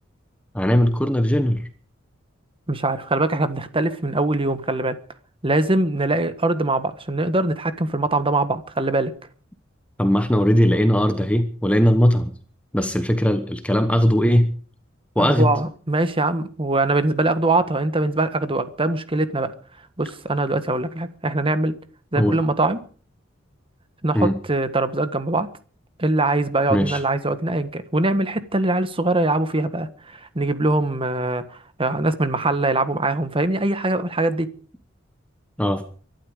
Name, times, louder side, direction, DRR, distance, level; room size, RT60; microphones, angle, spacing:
voice 1, 0.5-1.7 10.0-12.3 12.7-14.5 15.1-15.5 22.2-22.4 24.1-24.3 26.7-27.0 35.6-35.8, equal, 5° left, 1.2 m, -19 dB
voice 2, 2.7-5.0 5.4-9.1 15.2-19.5 20.0-21.8 22.1-22.8 24.0-25.5 26.0-34.5, right 2 dB, 25° right, 1.5 m, -22 dB
23.5 x 12.0 x 5.0 m
head